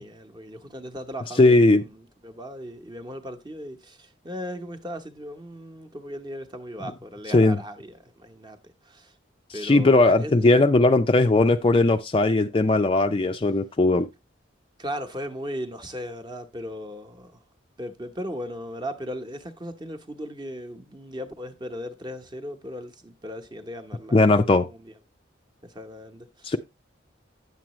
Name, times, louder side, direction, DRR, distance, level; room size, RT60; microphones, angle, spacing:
voice 1, 0.0-9.1 9.5-10.5 14.8-17.4 17.8-24.9 25.6-26.5, equal, 20° right, 0.9 m, -37 dB
voice 2, 1.4-1.8 7.3-7.6 9.6-14.1 24.1-24.7 26.4-26.6, left 2 dB, 25° left, 0.4 m, -18 dB
9.5 x 7.4 x 3.0 m
head